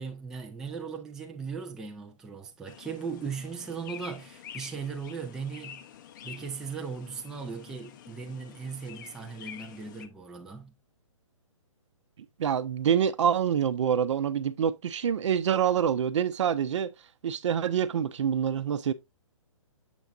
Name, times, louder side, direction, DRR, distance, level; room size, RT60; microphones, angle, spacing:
voice 1, 0.0-5.8 6.2-10.7, right 5 dB, 5° right, 0.4 m, -38 dB
sound 1, 2.7-10.1, left 9 dB, 35° left, 0.6 m, -48 dB
voice 2, 12.4-16.9 17.2-18.9, right 8 dB, 60° right, 0.8 m, -26 dB
7.0 x 7.0 x 2.4 m
hypercardioid pair, 145°, 18 cm